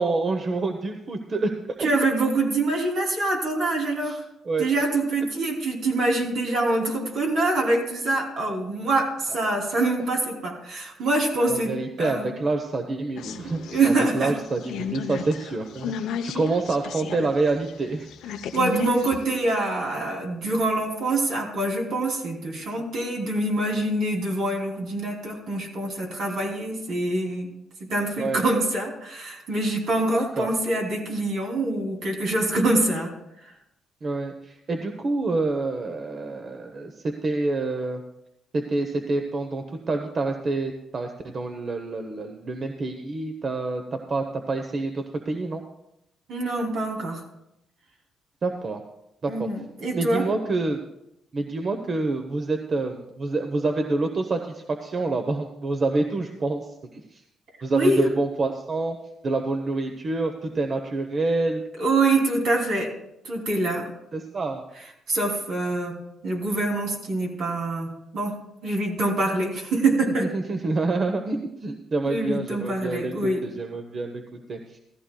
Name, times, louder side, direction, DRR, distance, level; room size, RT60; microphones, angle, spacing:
voice 1, 0.0-1.5 1.8-1.9 4.0-4.2 4.4-4.9 9.3-9.4 11.5-18.1 28.2-28.4 30.1-30.5 34.0-38.0 38.5-45.6 48.4-48.8 49.2-49.5 49.9-50.8 51.3-57.2 57.6-59.0 59.2-61.6 64.1-64.6 70.2-74.8, right 3 dB, 45° right, 5 dB, 0.9 m, -27 dB
voice 2, 1.8-4.2 4.6-12.3 13.4-14.3 18.5-27.5 27.9-33.1 33.4-33.5 46.3-47.2 49.3-50.2 57.7-58.0 61.8-62.9 63.2-63.9 65.1-66.0 66.2-68.4 68.6-70.3 72.1-73.4, right 2 dB, 70° right, 0 dB, 3.0 m, -25 dB
sound 1, 13.2-17.3 17.7-19.5, left 7 dB, 85° left, 0.7 m, -34 dB
15.5 x 14.5 x 2.3 m, 0.84 s
cardioid pair, 90°, 0 cm